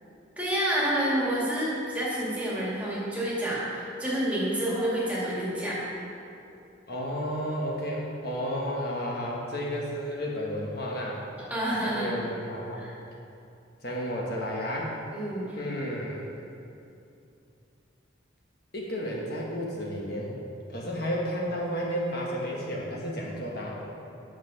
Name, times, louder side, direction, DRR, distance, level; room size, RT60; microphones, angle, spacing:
voice 1, 0.4-5.8 11.5-12.1 12.7-12.9 15.1-15.6, right 1 dB, 5° right, -7 dB, 2.1 m, -28 dB
voice 2, 6.9-11.2 11.8-12.8 13.8-15.0 15.5-16.3 18.7-20.3 20.7-23.7, equal, 50° left, -3 dB, 1.2 m, -32 dB
9.3 x 6.5 x 5.6 m, 2.6 s
head